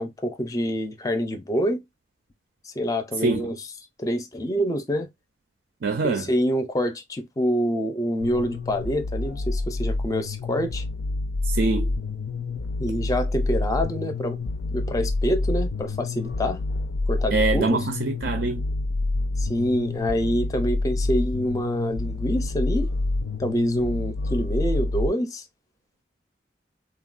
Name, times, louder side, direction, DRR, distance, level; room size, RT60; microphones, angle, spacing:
voice 1, 0.0-1.8 2.6-3.6 4.0-5.1 6.0-10.8 12.8-14.4 14.7-16.6 17.1-17.9 19.4-22.9 23.4-25.4, equal, 20° left, 0.4 m, -26 dB
voice 2, 5.8-6.3 11.4-11.9 17.3-18.6, right 3 dB, 70° right, 0.5 m, -24 dB
sound 1, 8.2-25.1, left 2 dB, 80° left, 0.4 m, -28 dB
3.4 x 2.1 x 2.4 m
head